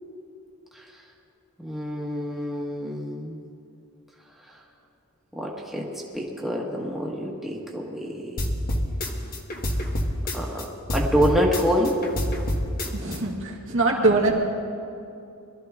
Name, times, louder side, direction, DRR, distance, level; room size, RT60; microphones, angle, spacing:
voice 1, 1.6-3.4 5.3-5.9 6.1-8.4 10.3-12.0, equal, ahead, -3 dB, 1.5 m, -26 dB
sound 1, 8.4-10.6 10.9-13.2, equal, 40° left, 1.4 m, -27 dB
voice 2, 12.9-14.3, right 2 dB, 60° right, -2 dB, 2.1 m, -22 dB
22.5 x 13.5 x 3.7 m, 2.6 s
head